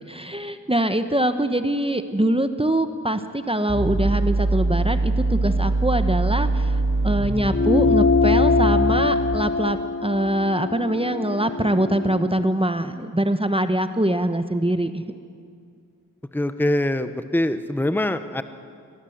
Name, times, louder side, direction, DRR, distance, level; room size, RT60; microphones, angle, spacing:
voice 1, 0.1-15.1, right 1 dB, 15° right, 9 dB, 1.0 m, -23 dB
sound 1, 3.7-9.7, right 2 dB, 80° right, 5.9 m, -23 dB
sound 2, 7.5-12.3, left 4 dB, 40° left, 1.5 m, -23 dB
voice 2, 16.3-18.4, left 1 dB, 5° left, 11 dB, 0.8 m, -23 dB
23.0 x 18.0 x 7.9 m, 2.3 s
wide cardioid pair, 60°, 33 cm